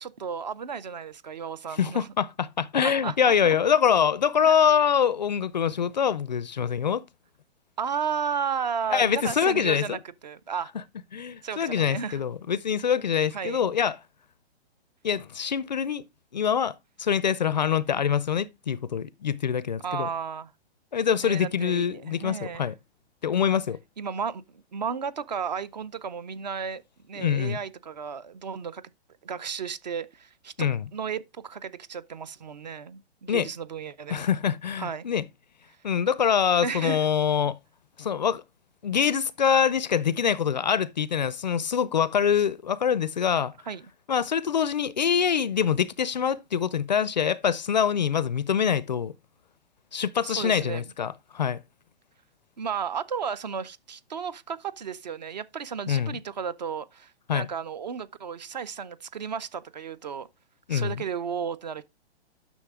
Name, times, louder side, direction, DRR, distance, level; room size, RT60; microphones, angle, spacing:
voice 1, 0.0-2.1 2.8-3.6 4.5-4.6 7.8-10.7 11.4-12.2 13.3-13.6 19.8-20.5 21.2-22.7 24.0-26.8 27.1-28.8 29.2-34.3 34.8-35.1 36.6-37.1 43.7-43.8 50.2-50.8 52.6-60.3 60.7-61.8, right 6 dB, 40° right, 0.5 m, -33 dB
voice 2, 1.8-7.0 8.9-10.0 11.1-14.0 15.0-16.0 16.3-20.1 20.9-22.7 23.2-23.8 27.2-27.6 30.6-30.8 33.3-33.5 34.1-35.2 35.8-37.6 38.0-38.4 38.8-43.5 44.1-49.1 49.9-51.6 55.9-56.2 57.3-57.5 60.7-61.0, left 7 dB, 45° left, 0.4 m, -24 dB
10.0 x 6.2 x 3.5 m
hypercardioid pair, 175°, 33 cm